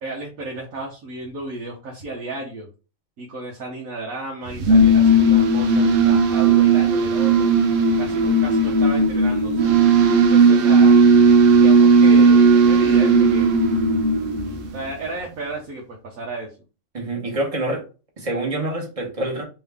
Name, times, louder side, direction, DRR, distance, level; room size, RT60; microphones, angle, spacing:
voice 1, 0.0-2.7 3.2-7.5 8.0-9.7 10.3-11.0 11.6-13.5 14.7-16.5, right 2 dB, 85° right, -2 dB, 1.4 m, -33 dB
sound 1, 4.5-14.9, right 3 dB, 70° right, 1.1 m, -15 dB
voice 2, 16.9-17.8 18.2-19.4, right 1 dB, 25° right, -1 dB, 1.4 m, -26 dB
3.7 x 3.3 x 3.4 m, 0.32 s
omnidirectional pair, 1.4 m